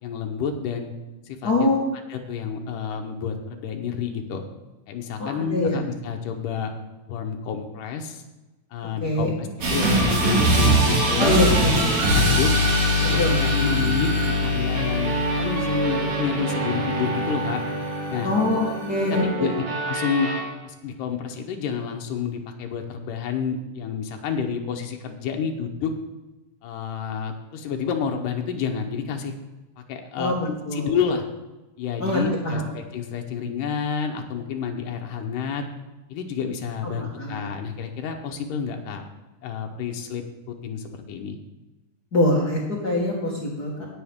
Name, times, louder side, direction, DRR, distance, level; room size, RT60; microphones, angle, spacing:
voice 1, 0.0-0.9 1.3-1.7 2.1-4.4 4.9-6.7 7.1-8.2 8.7-12.5 13.0-17.6 18.1-18.3 18.9-20.3 20.6-25.9 26.6-29.3 29.8-31.2 31.8-35.6 36.1-39.0 39.4-41.4, left 6 dB, 90° left, 3 dB, 2.5 m, -29 dB
voice 2, 1.4-1.9 5.2-5.8 9.0-9.3 11.2-11.9 13.2-13.3 18.2-19.5 30.2-30.9 32.0-32.6 37.2-37.5 42.1-43.9, left 1 dB, 40° left, -4 dB, 1.6 m, -23 dB
sound 1, 9.6-20.4, equal, 65° right, 3.8 m, -22 dB
17.5 x 7.3 x 3.6 m, 1.1 s
omnidirectional pair, 3.6 m